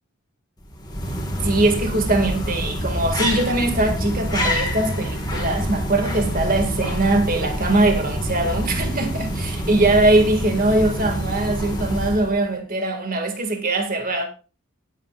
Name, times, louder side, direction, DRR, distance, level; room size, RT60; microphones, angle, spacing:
sound 1, 0.6-12.5, equal, 20° left, 1.7 m, -26 dB
voice 1, 1.4-14.2, right 2 dB, 40° right, 2.1 m, -21 dB
18.0 x 8.9 x 2.5 m
head